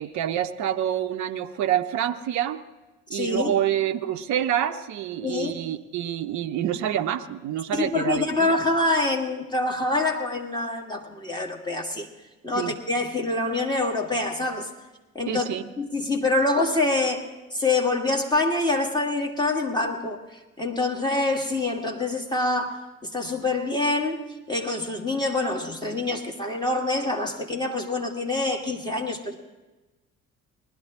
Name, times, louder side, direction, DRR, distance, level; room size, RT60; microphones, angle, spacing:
voice 1, 0.0-2.6 3.1-8.6 12.5-12.7 15.3-15.6, right 10 dB, 45° right, 8 dB, 0.8 m, -27 dB
voice 2, 3.1-3.5 5.2-5.5 7.7-12.1 12.4-14.7 15.1-17.3 17.5-20.2 20.6-24.2 24.5-29.4, left 2 dB, 10° left, 0 dB, 1.8 m, -26 dB
19.5 x 12.0 x 3.7 m, 1.1 s
figure-of-eight pair, 50°, 42 cm